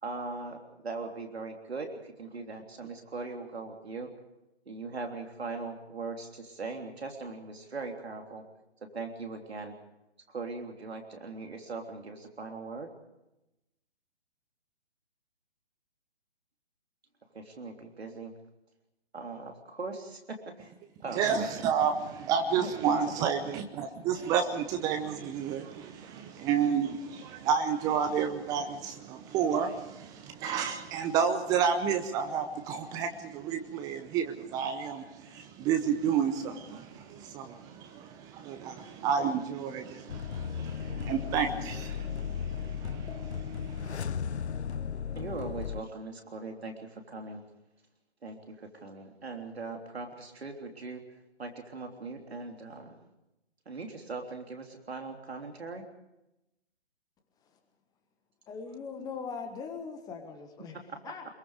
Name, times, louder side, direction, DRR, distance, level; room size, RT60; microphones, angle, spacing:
voice 1, 0.0-4.1 4.6-8.4 8.8-9.7 10.3-12.9 17.3-18.3 19.1-20.7 21.0-21.5 22.6-22.7 23.1-23.2 45.1-47.4 48.2-51.0 51.4-53.1 53.6-55.8, right 3 dB, 65° right, 3.5 m, -40 dB
voice 2, 21.1-44.0, right 7 dB, 10° right, 0.8 m, -31 dB
sound 1, 40.1-45.8, left 7 dB, 75° left, 0.7 m, -35 dB
voice 3, 58.5-61.3, left 5 dB, 10° left, 1.5 m, -40 dB
25.0 x 22.5 x 5.0 m
figure-of-eight pair, 135°, 33 cm